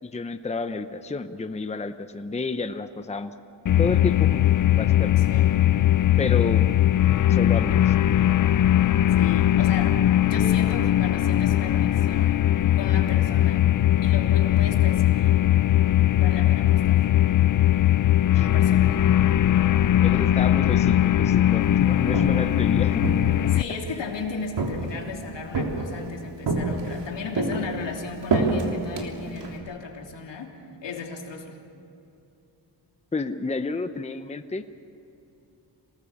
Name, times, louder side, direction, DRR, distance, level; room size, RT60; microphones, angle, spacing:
voice 1, 0.0-3.3 3.8-5.2 6.2-6.7 7.3-7.9 18.3-18.5 20.0-23.0 23.4-23.5 33.1-34.6, left 3 dB, 15° left, 9 dB, 0.8 m, -30 dB
sound 1, 3.7-23.6, left 12 dB, 50° left, 0.5 m, -20 dB
voice 2, 5.2-5.8 9.1-13.7 14.0-15.4 16.2-17.1 18.3-19.0 23.5-31.6, left 4 dB, 80° left, 1 dB, 3.3 m, -36 dB
Walk footsteps, 21.9-22.5 23.0-24.0 24.6-25.1 25.5-26.1 26.5-27.1 27.4-29.6, right 3 dB, 75° right, 3.4 m, -27 dB
26.5 x 19.5 x 7.2 m, 2.8 s
wide cardioid pair, 115°, 42 cm